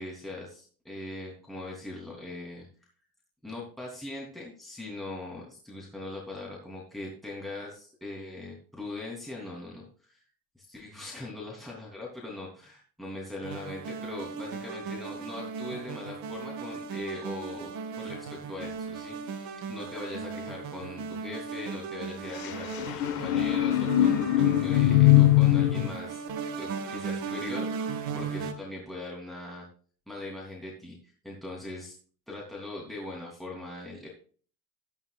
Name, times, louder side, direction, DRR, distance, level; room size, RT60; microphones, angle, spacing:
voice 1, 0.0-2.7 3.4-10.2 10.6-26.2 26.6-29.7 30.1-31.9 32.3-34.1, left 2 dB, ahead, -4 dB, 3.2 m, -41 dB
sound 1, 13.4-28.5, right 5 dB, 50° right, 1.9 m, -37 dB
sound 2, 22.4-25.9, left 13 dB, 50° left, 1.3 m, -22 dB
13.5 x 11.0 x 2.5 m, 0.42 s
hypercardioid pair, 75°, 46 cm